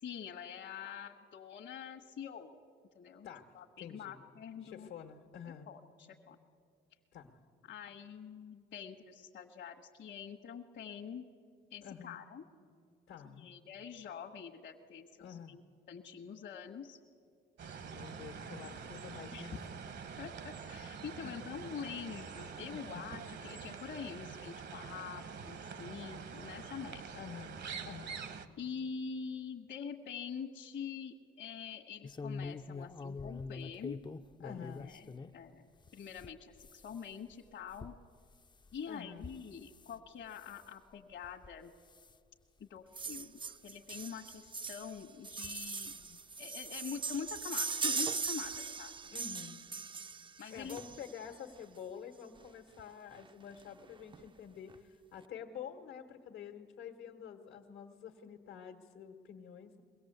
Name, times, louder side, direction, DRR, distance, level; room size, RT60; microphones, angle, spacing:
voice 1, 0.0-2.6 2.9-3.3 3.5-4.9 5.7-6.4 7.7-11.3 11.7-12.4 13.2-15.6 15.9-17.0 19.3-19.6 20.2-27.0 28.6-34.0 34.6-35.7 35.9-37.9 38.7-41.7 42.6-45.9 46.4-49.2 50.4-50.8, left 7 dB, 65° left, -1 dB, 1.4 m, -45 dB
voice 2, 3.2-4.2 4.6-5.7 7.1-7.4 11.8-12.2 13.1-13.5 15.2-15.6 17.9-19.5 21.2-21.3 22.7-23.0 27.1-28.2 34.4-34.9 38.9-39.3 46.0-46.2 49.1-49.6 50.5-59.8, left 8 dB, 80° left, 2 dB, 1.5 m, -48 dB
sound 1, 17.6-28.5, right 6 dB, 65° right, 1.3 m, -46 dB
sound 2, 32.0-35.4 35.8-39.9 40.3-40.7 41.2-41.6 41.9-42.2 42.8-42.9 43.2-43.3 44.5-44.6 45.3-46.1 47.3-47.5 47.8-47.9 48.3-48.4, left 4 dB, 20° left, 0.5 m, -46 dB
sound 3, 42.9-51.3 52.4-52.5 52.8-52.9 53.1-53.3 53.6-54.2 54.7-54.8, right 5 dB, 25° right, 0.5 m, -40 dB
22.5 x 17.5 x 8.0 m, 2.3 s
cardioid pair, 90°, 20 cm